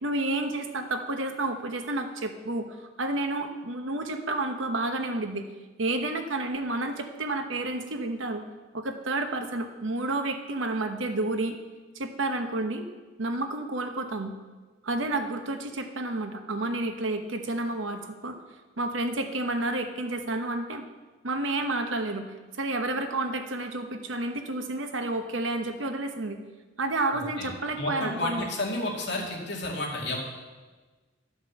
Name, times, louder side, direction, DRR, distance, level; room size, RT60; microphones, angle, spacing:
voice 1, 0.0-2.6 3.0-5.5 5.8-8.4 8.7-11.6 11.9-12.9 13.2-14.3 14.8-18.4 18.8-20.9 21.2-22.3 22.6-26.4 26.8-28.5, right 2 dB, 90° right, 6 dB, 1.1 m, -30 dB
voice 2, 27.1-30.2, left 2 dB, 65° left, -2 dB, 2.3 m, -32 dB
11.5 x 5.3 x 7.1 m, 1.3 s
head